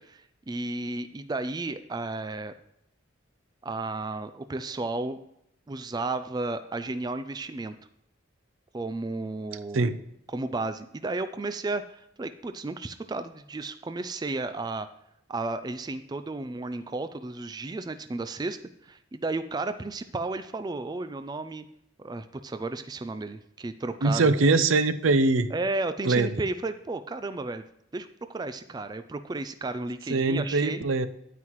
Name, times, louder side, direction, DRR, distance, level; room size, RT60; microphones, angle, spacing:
voice 1, 0.0-2.5 3.6-5.2 5.7-7.7 8.7-9.8 10.3-14.9 15.3-18.6 18.8-21.6 22.0-24.3 25.5-27.6 27.9-30.8, right 2 dB, 20° right, 11 dB, 0.3 m, -33 dB
voice 2, 24.0-25.5 26.0-26.3 30.1-31.1, right 3 dB, 80° right, 13 dB, 0.6 m, -22 dB
9.4 x 9.3 x 3.1 m, 0.80 s
head